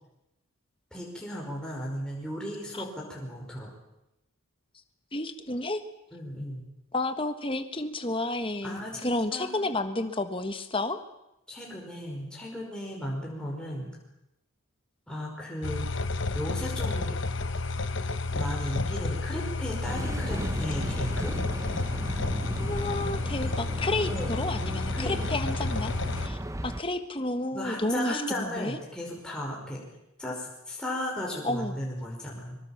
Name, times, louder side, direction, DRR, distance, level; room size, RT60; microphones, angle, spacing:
voice 1, 0.9-3.7 6.1-6.7 8.6-9.7 11.5-13.9 15.1-15.9 16.3-17.2 18.3-21.3 24.1-24.4 24.9-25.5 27.5-29.8 30.2-32.6, equal, 5° left, -3 dB, 5.3 m, -35 dB
voice 2, 5.1-5.8 6.9-11.0 22.6-25.9 26.2-28.8 31.4-31.7, left 2 dB, 25° left, 9 dB, 1.5 m, -31 dB
sound 1, 15.6-26.3, left 3 dB, 55° left, 1.1 m, -31 dB
sound 2, 19.8-26.8, right 1 dB, 15° right, 0.9 m, -35 dB
24.0 x 23.5 x 7.4 m, 0.88 s
head